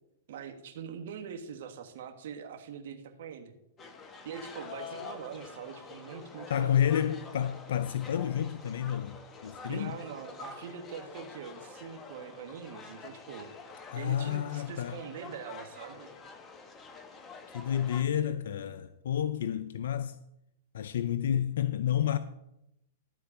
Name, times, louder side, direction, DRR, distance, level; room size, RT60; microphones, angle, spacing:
voice 1, 0.3-3.5 4.2-6.8 9.7-16.1, right 7 dB, 65° right, 1.5 m, -43 dB
sound 1, 3.8-18.0, left 4 dB, 20° left, 1.2 m, -47 dB
voice 2, 6.5-10.0 13.9-15.0 17.5-20.2 20.7-22.2, left 10 dB, 75° left, 0.5 m, -30 dB
12.5 x 4.5 x 7.2 m
hypercardioid pair, 125°, 0 cm